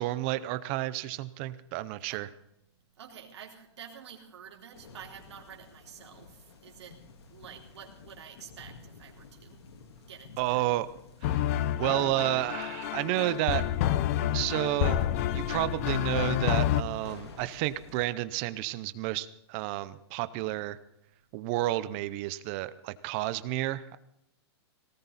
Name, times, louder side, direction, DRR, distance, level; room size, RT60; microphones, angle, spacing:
voice 1, 0.0-2.3 10.4-10.9 11.2-11.5 11.8-13.6 14.3-15.1 15.3-20.8 21.3-24.0, right 16 dB, 25° right, 15 dB, 0.6 m, -31 dB
voice 2, 3.0-6.3 6.6-7.0 7.3-9.7 10.1-10.7, right 8 dB, 75° right, 0 dB, 3.8 m, -49 dB
sound 1, 4.7-18.1, left 4 dB, 70° left, 3.4 m, -52 dB
sound 2, 11.2-16.8, left 11 dB, 30° left, 0.6 m, -29 dB
18.5 x 17.5 x 4.1 m, 0.77 s
supercardioid pair, 175°, 14 cm